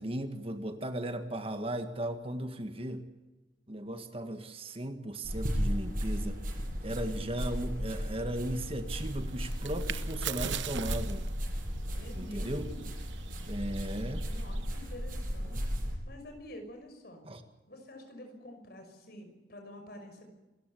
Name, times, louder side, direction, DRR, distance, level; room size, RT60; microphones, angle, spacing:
voice 1, 0.0-3.0 3.7-6.4 6.8-11.2 12.2-12.7 13.4-14.2 17.2-17.4, right 1 dB, 30° right, 7 dB, 1.7 m, -36 dB
sound 1, 5.2-15.9, equal, 50° right, 7.3 m, -35 dB
sound 2, 9.0-14.8, right 9 dB, 85° right, 0.9 m, -42 dB
voice 2, 11.9-12.9 14.2-17.2 17.7-20.3, left 1 dB, 55° left, 5 dB, 5.8 m, -48 dB
27.0 x 14.5 x 8.4 m, 1.1 s
head